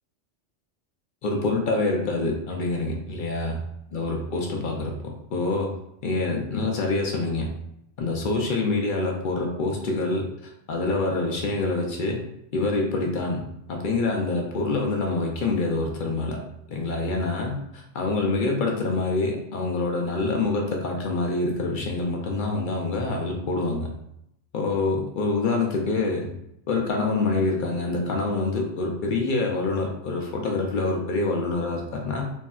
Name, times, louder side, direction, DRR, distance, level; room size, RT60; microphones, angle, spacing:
voice 1, 1.2-3.5 3.9-4.9 5.3-5.7 6.0-7.5 8.0-10.3 10.7-12.2 12.5-13.4 13.7-16.4 16.7-23.9 24.5-26.3 26.7-32.3, left 3 dB, 60° left, 0 dB, 0.6 m, -26 dB
3.1 x 2.7 x 2.3 m, 0.78 s
omnidirectional pair, 1.2 m